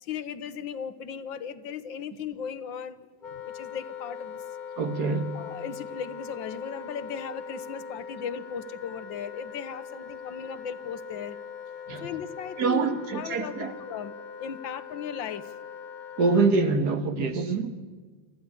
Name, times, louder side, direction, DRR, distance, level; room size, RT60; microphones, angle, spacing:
voice 1, 0.0-3.0 3.3-4.4 5.3-11.4 12.0-15.5, left 7 dB, 80° left, 13 dB, 1.8 m, -37 dB
Wind instrument woodwind instrument, 3.2-16.6, left 6 dB, 30° left, 1.0 m, -41 dB
voice 2, 4.8-5.3 11.9-12.1 12.6-13.7 16.2-17.7, right 4 dB, 60° right, 8 dB, 1.9 m, -25 dB
27.0 x 14.5 x 9.8 m, 1.5 s
omnidirectional pair, 2.0 m